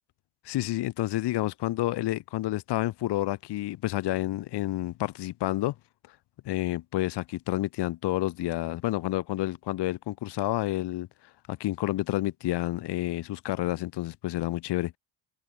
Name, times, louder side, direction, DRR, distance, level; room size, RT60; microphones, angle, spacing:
voice 1, 0.4-5.7 6.4-11.1 11.5-15.0, left 16 dB, 70° left, 1.5 m, -29 dB
cardioid pair, 120°, 42 cm